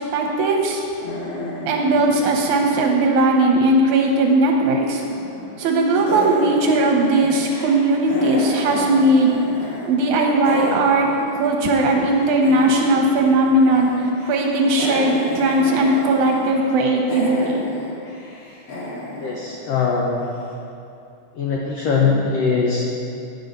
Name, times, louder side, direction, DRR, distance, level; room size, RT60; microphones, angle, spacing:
voice 1, 0.1-0.8 1.7-5.0 5.6-9.3 9.9-17.6, right 2 dB, 75° right, 1 dB, 1.9 m, -18 dB
sound 1, 1.0-4.1 4.4-5.6 5.9-9.9 10.1-20.2, left 1 dB, 50° left, 2.5 m, -32 dB
voice 2, 19.2-20.2 21.4-22.9, left 5 dB, 85° left, -2 dB, 1.4 m, -21 dB
9.5 x 5.3 x 6.7 m, 2.7 s
omnidirectional pair, 3.9 m